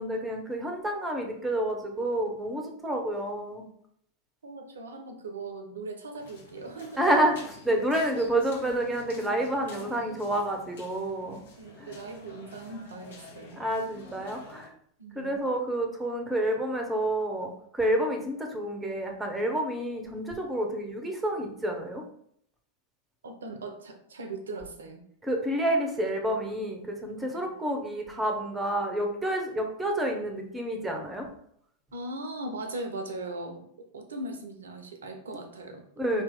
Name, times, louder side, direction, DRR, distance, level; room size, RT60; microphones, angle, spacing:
voice 1, 0.0-3.6 7.0-7.3 7.6-11.4 11.8-11.9 13.5-14.7 15.1-22.0 25.2-31.3 36.0-36.2, right 1 dB, 10° right, 3 dB, 1.0 m, -29 dB
voice 2, 4.4-7.0 11.5-13.6 15.0-15.4 23.2-25.0 31.9-33.7 33.9-35.8, right 2 dB, 65° right, 6 dB, 0.8 m, -39 dB
sound 1, 6.2-14.7, left 2 dB, 60° left, 1.2 m, -47 dB
4.8 x 2.9 x 3.8 m, 0.67 s
figure-of-eight pair, 90°, 0 cm